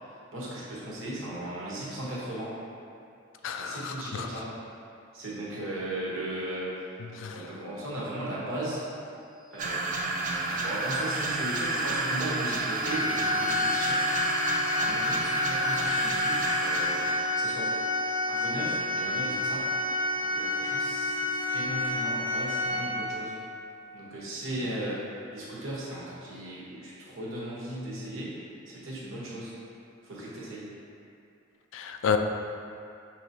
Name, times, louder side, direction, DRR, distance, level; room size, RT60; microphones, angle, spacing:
voice 1, 0.3-2.6 3.5-4.5 5.1-6.8 7.3-8.8 9.5-14.3 14.6-17.7 18.3-19.7 20.2-23.3 23.9-28.4 28.7-29.5 30.0-30.7, right 1 dB, 85° right, -7 dB, 1.1 m, -37 dB
voice 2, 3.4-4.3 7.2-7.4 31.7-32.2, left 7 dB, 70° left, 6 dB, 0.3 m, -30 dB
sound 1, 8.8-22.4, left 1 dB, ahead, 0.7 m, -46 dB
sound 2, 9.6-17.2, right 2 dB, 40° right, 0.4 m, -30 dB
Organ, 12.8-23.4, left 2 dB, 60° right, 0.9 m, -29 dB
5.9 x 3.0 x 2.7 m, 2.6 s
head